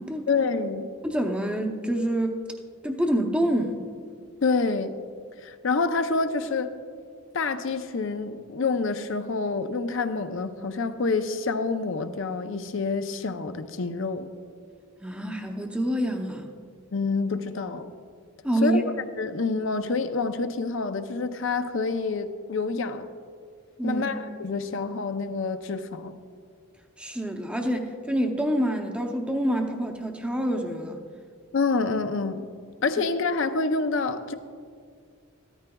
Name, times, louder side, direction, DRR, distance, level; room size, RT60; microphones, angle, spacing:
voice 1, 0.3-0.9 4.4-4.9 5.4-6.7 7.3-14.3 16.9-17.9 18.6-18.8 19.2-23.1 23.8-26.2 31.5-32.5 32.8-34.3, left 4 dB, 65° left, 9 dB, 0.6 m, -27 dB
voice 2, 1.0-2.4 2.8-3.8 15.0-16.5 18.4-18.8 23.8-24.0 27.0-31.0, right 1 dB, 5° right, 3 dB, 0.7 m, -27 dB
15.0 x 13.0 x 2.3 m, 2.1 s
head